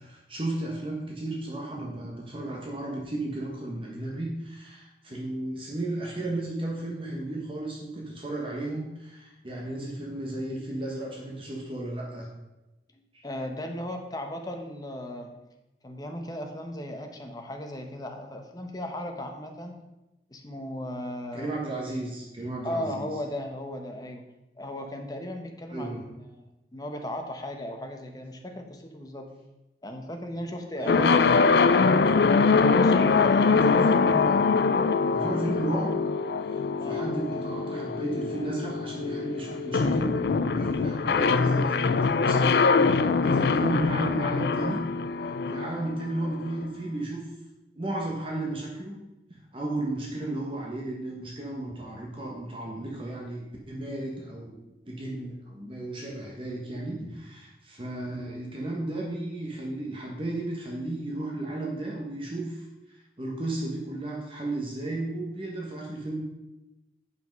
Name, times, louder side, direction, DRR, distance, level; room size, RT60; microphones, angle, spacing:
voice 1, 0.0-12.3 13.1-13.2 21.3-23.1 25.7-26.1 30.8-31.2 33.4-34.4 35.1-35.9 36.5-42.5 42.8-44.8 45.2-47.3 47.7-49.0 49.3-54.6 54.8-66.2, right 2 dB, 30° right, -2 dB, 1.3 m, -34 dB
voice 2, 12.9-15.3 15.8-19.8 20.3-21.5 22.6-24.2 24.6-26.0 26.3-29.3 29.8-32.0 32.6-33.7 36.8-37.1, left 1 dB, 20° left, 3 dB, 1.0 m, -36 dB
sound 1, 30.9-46.6, left 4 dB, 65° left, 0.4 m, -23 dB
8.1 x 5.7 x 5.3 m, 1.0 s
head